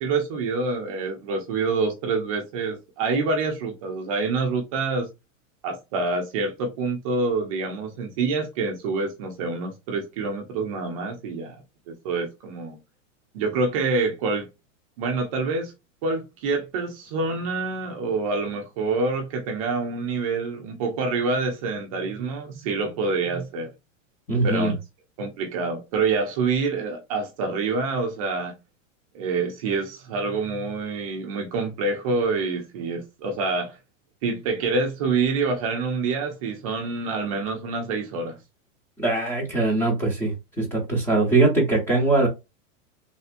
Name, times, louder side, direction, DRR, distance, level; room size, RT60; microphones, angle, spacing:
voice 1, 0.0-5.1 5.6-11.6 11.9-12.8 13.3-14.5 15.0-15.7 16.0-23.7 24.4-24.7 25.2-28.5 29.1-33.8 34.2-38.4, right 4 dB, 25° right, 0.6 m, -26 dB
voice 2, 24.3-24.7 39.0-42.3, right 2 dB, 5° left, 0.8 m, -22 dB
3.4 x 2.7 x 2.5 m
supercardioid pair, 170°, 39 cm